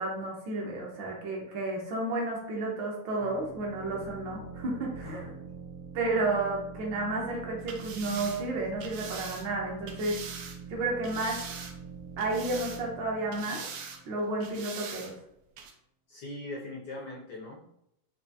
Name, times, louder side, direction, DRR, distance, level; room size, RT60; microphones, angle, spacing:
voice 1, 0.0-5.3 5.9-10.2 10.7-11.5 12.2-13.7 14.1-15.1, right 2 dB, 70° right, -2 dB, 1.3 m, -32 dB
sound 1, 3.2-14.7, right 5 dB, 45° right, 0.6 m, -45 dB
voice 2, 5.0-5.4 16.1-17.6, left 2 dB, 75° left, -2 dB, 1.0 m, -40 dB
sound 2, 7.6-10.6 11.0-11.9 12.2-13.0 13.3-14.0 14.4-15.1 15.6-15.7, right 6 dB, 90° right, 1.5 m, -42 dB
4.4 x 2.4 x 2.7 m, 0.79 s
omnidirectional pair, 2.3 m